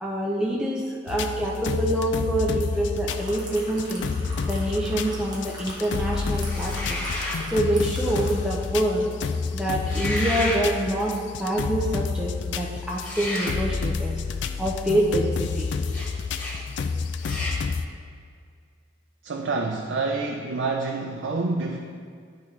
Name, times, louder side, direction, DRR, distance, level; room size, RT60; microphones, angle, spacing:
voice 1, 0.0-4.1 4.5-7.0 7.5-11.1 11.4-14.2 14.6-15.7, right 1 dB, 5° right, -4 dB, 0.5 m, -26 dB
sound 1, 1.1-17.9, left 5 dB, 75° left, 0.3 m, -29 dB
sound 2, 2.8-8.8 9.1-9.3, right 1 dB, 20° right, 0.8 m, -42 dB
sound 3, 6.4-7.4 9.7-10.6 13.0-13.6 15.9-16.1 16.3-16.6 17.2-17.6, left 1 dB, 45° left, 1.3 m, -31 dB
voice 2, 19.2-21.8, right 3 dB, 75° right, 1 dB, 0.4 m, -27 dB
10.0 x 3.6 x 3.2 m, 2.2 s
head